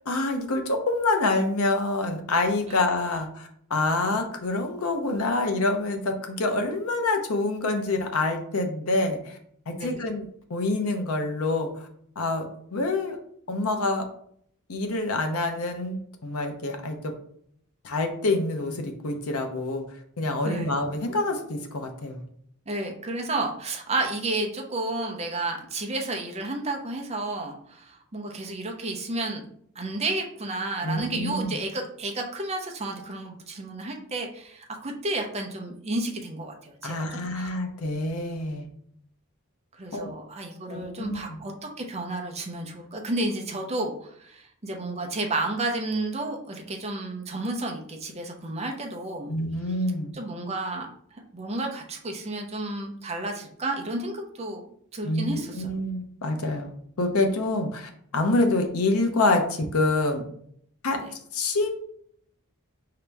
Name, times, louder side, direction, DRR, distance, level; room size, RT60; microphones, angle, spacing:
voice 1, 0.1-9.4 9.7-11.9 12.2-13.2 13.5-14.0 14.7-17.1 17.8-19.8 20.2-22.2 30.8-31.6 36.8-38.7 39.9-40.1 40.7-41.4 49.3-50.1 55.0-60.2 60.8-61.0 61.3-61.7, left 2 dB, 75° left, 4 dB, 0.7 m, -26 dB
voice 2, 20.4-20.8 22.7-29.4 29.8-37.1 37.3-37.5 39.8-49.3 50.1-50.9 51.3-54.6 54.9-55.6 61.0-61.1, right 2 dB, 30° right, 2 dB, 0.7 m, -31 dB
5.0 x 2.9 x 3.4 m, 0.66 s
head